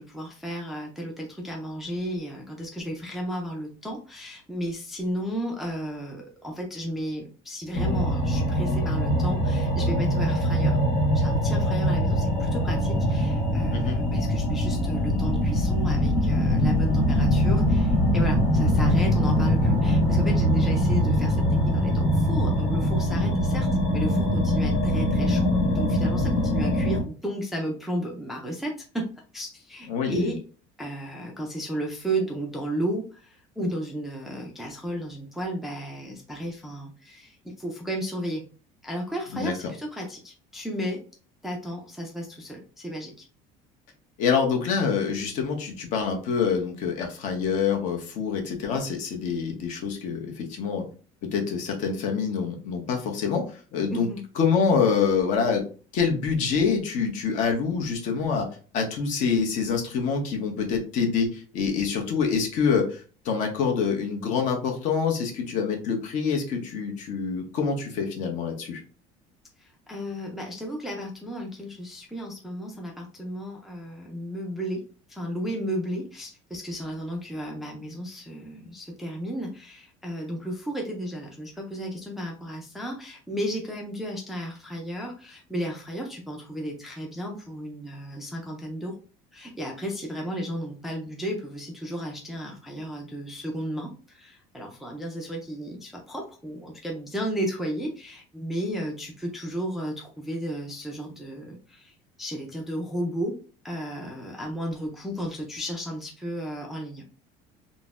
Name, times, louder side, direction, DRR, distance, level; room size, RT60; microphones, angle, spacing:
voice 1, 0.0-10.8 11.1-29.1 29.3-30.4 30.8-38.4 38.8-41.0 41.4-43.3 53.9-54.2 69.6-89.0 89.3-103.4 103.6-107.0, equal, ahead, 0 dB, 0.3 m, -34 dB
sound 1, 7.7-27.0, equal, 75° left, 1.3 m, -23 dB
voice 2, 29.9-30.3 39.3-39.5 44.2-50.8 51.3-53.4 53.7-54.1 54.4-55.6 55.9-58.5 58.7-68.8, left 6 dB, 50° left, 3 dB, 0.8 m, -26 dB
3.9 x 2.0 x 2.4 m, 0.38 s
cardioid pair, 165°, 16 cm